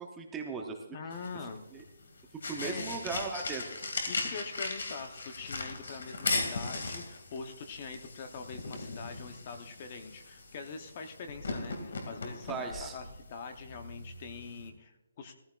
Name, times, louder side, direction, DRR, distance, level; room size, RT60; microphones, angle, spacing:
voice 1, 0.0-1.0 1.7-1.8 2.5-3.6 12.5-13.0, right 4 dB, 10° right, 2 dB, 0.7 m, -37 dB
voice 2, 0.9-1.6 2.6-2.9 4.1-15.4, left 5 dB, 30° left, 7 dB, 0.8 m, -44 dB
sound 1, 1.1-14.7, left 3 dB, 70° left, 2.3 m, -39 dB
16.5 x 14.0 x 2.4 m, 0.99 s
hypercardioid pair, 175°, 0 cm